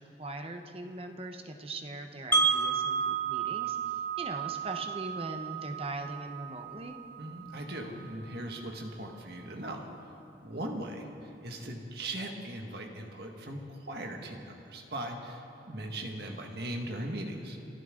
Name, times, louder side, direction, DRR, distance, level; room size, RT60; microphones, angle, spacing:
voice 1, 0.0-7.0, right 2 dB, 30° right, 6 dB, 0.9 m, -41 dB
Wind chime, 2.3-8.3, right 5 dB, 10° left, 1.2 m, -32 dB
voice 2, 7.2-9.9 10.4-17.6, right 1 dB, 60° right, 2 dB, 1.8 m, -39 dB
27.5 x 12.5 x 3.8 m, 3.0 s
head